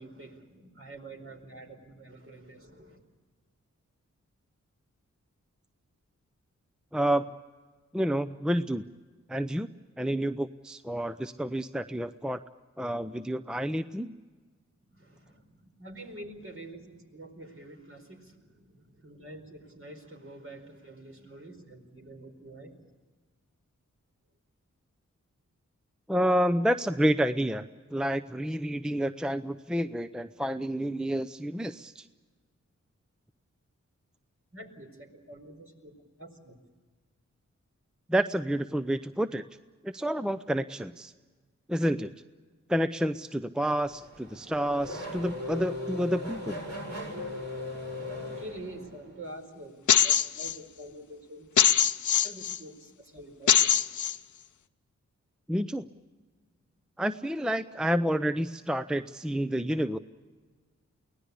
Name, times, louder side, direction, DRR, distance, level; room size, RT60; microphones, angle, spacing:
voice 1, 0.0-3.1 14.9-22.9 34.5-36.6 48.3-49.8 50.0-51.5 52.2-53.7, right 1 dB, 50° right, 4 dB, 4.7 m, -47 dB
voice 2, 6.9-7.3 7.9-8.8 9.3-9.7 10.0-12.4 12.8-14.1 26.1-27.7 27.9-32.1 38.1-39.4 39.8-41.1 41.7-42.1 42.7-46.6 55.5-55.8 57.0-60.0, equal, 5° right, 12 dB, 0.6 m, -29 dB
Race car auto racing / Accelerating revving vroom, 43.7-49.2, left 2 dB, 65° right, 7.9 m, -38 dB
sound 1, 49.9-50.6 51.6-52.6 53.5-54.2, left 8 dB, 85° left, 0.7 m, -22 dB
23.5 x 18.5 x 8.3 m, 1.4 s
cardioid pair, 60°, 29 cm